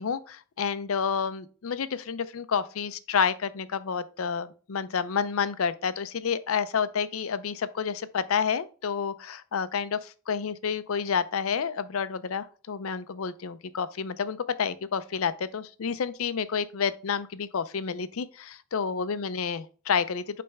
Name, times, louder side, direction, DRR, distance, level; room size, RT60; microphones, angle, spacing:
voice 1, 0.0-20.4, left 6 dB, 80° left, 0.5 m, -29 dB
8.5 x 3.4 x 3.3 m
head